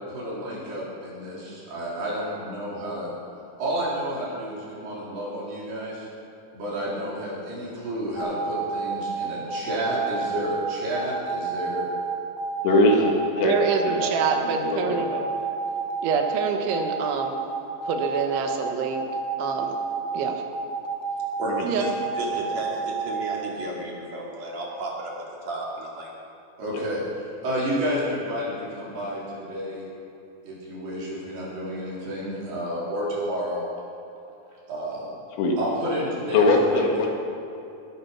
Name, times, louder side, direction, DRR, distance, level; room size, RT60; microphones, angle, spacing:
voice 1, 0.1-3.1 3.6-6.1 6.5-11.8 26.6-27.0 27.4-29.9 30.4-33.6 34.7-35.1 35.6-36.9, equal, 60° right, -7 dB, 5.9 m, -30 dB
sound 1, 8.2-23.4, right 4 dB, 65° left, 3.1 m, -30 dB
voice 2, 12.6-13.5 13.9-15.2 21.5-21.6 22.3-22.4 26.7-26.9 35.4-35.6 36.3-37.1, left 2 dB, 90° left, 1 dB, 4.0 m, -22 dB
voice 3, 13.4-15.1 16.0-17.3 17.9-19.0 19.4-19.7 20.1-20.4 21.6-21.9, right 5 dB, 90° right, 4 dB, 3.7 m, -26 dB
voice 4, 21.4-25.1 25.4-26.1, right 1 dB, 45° right, -3 dB, 3.2 m, -33 dB
20.0 x 10.0 x 5.9 m, 2.8 s
omnidirectional pair, 5.2 m